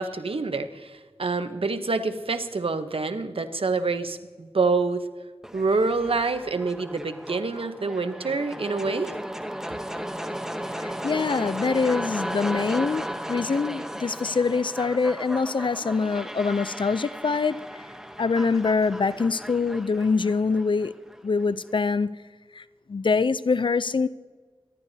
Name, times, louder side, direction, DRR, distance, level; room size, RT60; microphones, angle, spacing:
voice 1, 0.0-5.0 5.5-9.1, right 3 dB, 65° right, 9 dB, 0.9 m, -27 dB
sound 1, 5.4-21.5, equal, 5° right, 0.9 m, -35 dB
voice 2, 10.8-17.8 18.2-20.9 21.2-22.1 22.5-24.1, left 4 dB, 55° left, 15 dB, 0.4 m, -24 dB
24.0 x 11.5 x 2.7 m, 1.4 s
wide cardioid pair, 70°, 10 cm